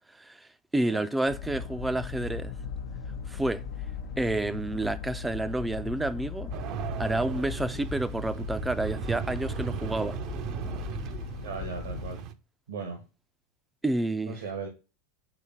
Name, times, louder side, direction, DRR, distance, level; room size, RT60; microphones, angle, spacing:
voice 1, 0.1-2.5 3.3-3.6 4.2-6.5 7.0-10.2 13.8-14.4, right 1 dB, 10° right, 0.5 m, -29 dB
sound 1, 1.3-12.2, left 5 dB, 70° left, 0.7 m, -38 dB
sound 2, 6.5-12.3, right 9 dB, 50° right, 0.7 m, -37 dB
voice 2, 11.4-12.2 12.7-13.0 14.2-14.7, right 5 dB, 85° right, 1.5 m, -37 dB
5.0 x 4.3 x 5.5 m
hypercardioid pair, 105°, 0 cm